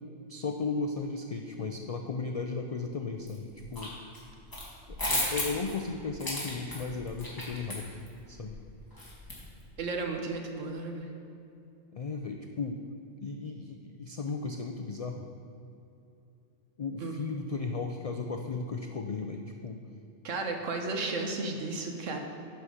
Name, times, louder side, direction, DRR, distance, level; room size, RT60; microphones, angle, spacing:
voice 1, 0.3-3.9 4.9-7.9 8.3-8.6 11.9-12.8 13.2-15.3 16.8-19.8, left 4 dB, 75° left, 4 dB, 0.3 m, -35 dB
sound 1, 3.3-3.9 4.1-9.7, left 1 dB, 15° left, 1.9 m, -35 dB
voice 2, 9.8-11.1 17.0-17.2 20.2-22.2, right 3 dB, 85° right, 3 dB, 1.4 m, -34 dB
10.5 x 5.7 x 4.9 m, 2.8 s
omnidirectional pair, 1.3 m